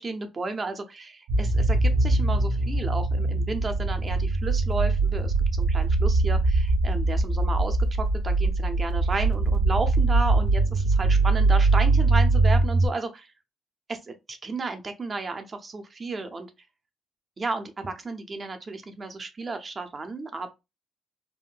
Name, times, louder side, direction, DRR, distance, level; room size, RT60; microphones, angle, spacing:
voice 1, 0.0-13.3 13.9-16.5 17.4-20.5, right 3 dB, 35° right, 0.7 m, -33 dB
sound 1, 1.3-12.9, right 3 dB, 80° right, 0.7 m, -22 dB
3.6 x 2.1 x 2.4 m
cardioid pair, 90°, 0 cm